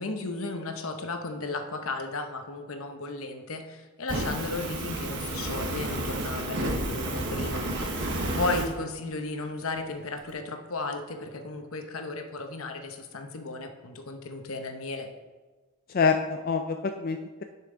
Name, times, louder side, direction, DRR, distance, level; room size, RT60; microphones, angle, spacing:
voice 1, 0.0-15.1, left 3 dB, 70° left, 5 dB, 0.9 m, -35 dB
Fire, 4.1-8.7, right 1 dB, 55° right, 1.3 m, -31 dB
voice 2, 15.9-17.4, left 5 dB, 40° left, 5 dB, 0.4 m, -27 dB
10.0 x 5.8 x 3.8 m, 1.3 s
head